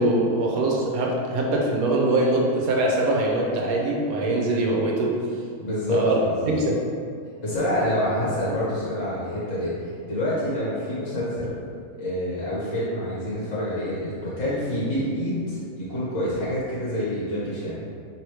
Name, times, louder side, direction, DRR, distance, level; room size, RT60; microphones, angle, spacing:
voice 1, 0.0-5.2 5.9-6.2 6.5-6.8, right 2 dB, 75° right, -2 dB, 1.2 m, -23 dB
voice 2, 5.6-6.5 7.4-11.5 11.9-17.8, left 1 dB, 60° left, -9 dB, 1.6 m, -27 dB
3.4 x 3.0 x 4.8 m, 2.2 s
omnidirectional pair, 1.6 m